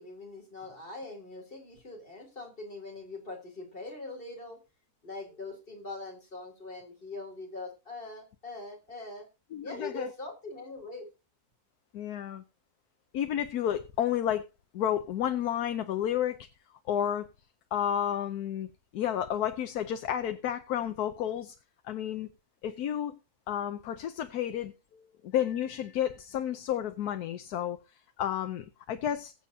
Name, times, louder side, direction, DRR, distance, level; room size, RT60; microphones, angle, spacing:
voice 1, 0.0-4.6 5.0-9.3 9.6-11.1, left 3 dB, 35° left, 3.5 m, -42 dB
voice 2, 9.5-10.1 11.9-12.4 13.1-14.5 14.7-16.5 16.9-17.3 17.7-18.7 18.9-21.5 21.8-22.3 22.6-23.1 23.5-27.8 28.2-29.3, left 10 dB, 90° left, 1.3 m, -31 dB
21.5 x 7.6 x 2.7 m
omnidirectional pair, 1.6 m